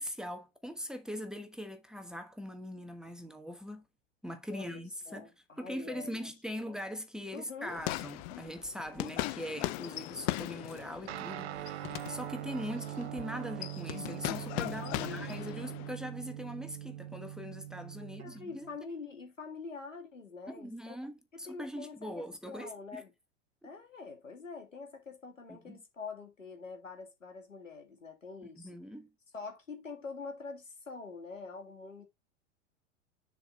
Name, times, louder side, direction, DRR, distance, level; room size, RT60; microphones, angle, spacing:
voice 1, 0.0-3.8 4.2-5.3 5.6-18.7 20.5-23.0 23.6-23.7 25.7-25.8 28.5-29.1, equal, ahead, 1.2 m, -41 dB
voice 2, 4.5-6.3 6.6-6.8 7.3-7.8 14.8-15.6 18.0-21.0 21.3-23.1 23.6-28.8 29.3-32.0, left 4 dB, 85° left, 2.1 m, -45 dB
sound 1, 7.7-15.9, left 18 dB, 35° left, 0.5 m, -39 dB
Guitar, 11.1-18.8, right 13 dB, 55° right, 0.7 m, -42 dB
7.0 x 4.8 x 4.0 m
figure-of-eight pair, 95°, 37 cm